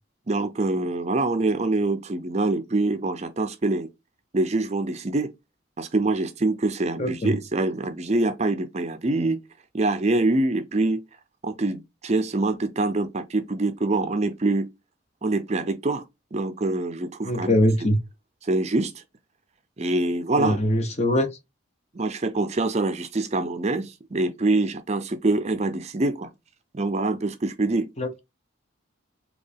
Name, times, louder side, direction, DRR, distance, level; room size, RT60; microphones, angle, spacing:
voice 1, 0.3-3.9 4.3-5.3 5.8-9.4 9.7-11.0 11.4-14.7 15.2-16.0 16.3-17.5 18.4-18.9 19.8-20.6 21.9-26.3 26.7-27.9, right 2 dB, 35° right, 0.5 m, -25 dB
voice 2, 7.0-7.3 17.2-18.0 20.4-21.3 28.0-28.2, left 1 dB, 35° left, 0.8 m, -22 dB
4.3 x 2.9 x 3.4 m
head